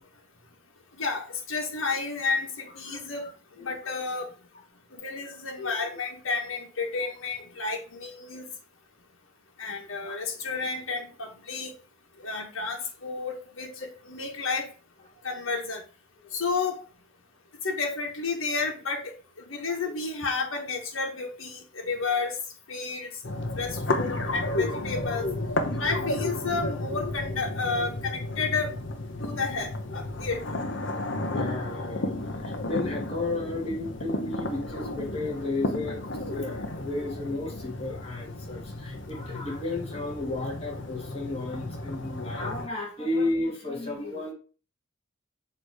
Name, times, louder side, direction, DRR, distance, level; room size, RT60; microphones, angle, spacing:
voice 1, 1.0-3.3 3.6-4.3 4.9-8.5 9.6-11.7 12.2-14.7 15.2-15.8 16.3-16.8 17.6-19.1 19.5-22.4 22.7-23.1 23.6-25.3 25.8-28.7 29.2-30.4, left 4 dB, 90° left, 1 dB, 1.4 m, -31 dB
voice 2, 3.5-3.9 5.6-5.8 10.0-10.1 15.1-15.3 16.2-16.3 30.8-44.3, left 2 dB, 30° left, -3 dB, 2.0 m, -33 dB
sound 1, 23.2-42.7, left 2 dB, 65° left, 0.9 m, -33 dB
6.8 x 3.1 x 4.9 m, 0.37 s
head